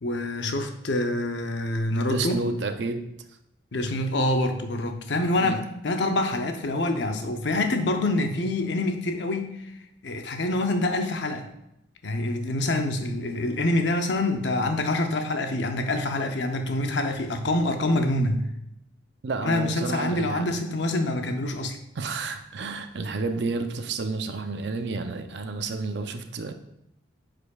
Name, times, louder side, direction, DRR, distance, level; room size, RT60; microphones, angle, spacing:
voice 1, 0.0-2.4 3.7-9.7 10.0-11.5 12.0-18.5 19.4-21.8, left 2 dB, 60° left, 5 dB, 0.7 m, -26 dB
voice 2, 2.1-3.0 5.4-5.6 19.2-20.4 22.0-26.5, right 3 dB, 60° right, 7 dB, 0.5 m, -30 dB
8.2 x 5.1 x 2.3 m, 0.82 s
head